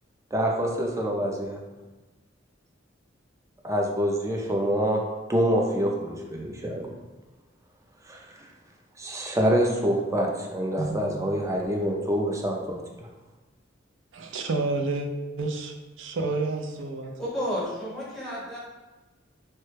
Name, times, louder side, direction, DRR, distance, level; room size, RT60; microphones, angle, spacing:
voice 1, 0.3-1.6 3.6-5.0 5.3-6.9 8.0-8.5 9.0-12.8, equal, 15° right, 0 dB, 0.4 m, -26 dB
voice 2, 14.1-15.1 15.4-17.1, right 3 dB, 75° right, 4 dB, 0.4 m, -29 dB
voice 3, 17.2-18.6, equal, ahead, -7 dB, 0.9 m, -31 dB
3.1 x 2.1 x 3.2 m, 1.2 s
head